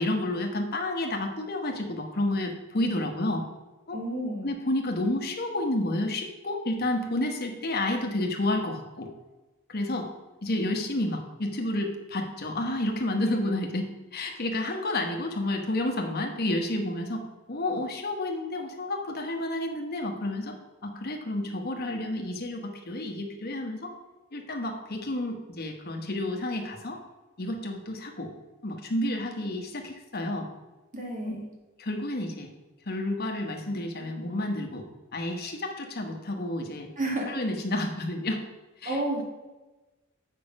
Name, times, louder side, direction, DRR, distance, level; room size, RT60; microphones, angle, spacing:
voice 1, 0.0-3.4 3.9-4.0 4.4-9.1 9.7-10.1 10.4-17.2 17.5-20.6 20.8-23.9 24.3-27.0 27.4-28.3 28.6-30.5 31.8-32.5 32.9-34.9 35.1-36.9 37.3-38.4 38.8-39.2, left 1 dB, 45° left, 3 dB, 1.2 m, -30 dB
voice 2, 3.9-4.5 30.9-31.5 37.0-37.3 38.9-39.2, right 1 dB, 40° right, -1 dB, 2.1 m, -30 dB
7.0 x 5.9 x 5.3 m, 1.2 s
head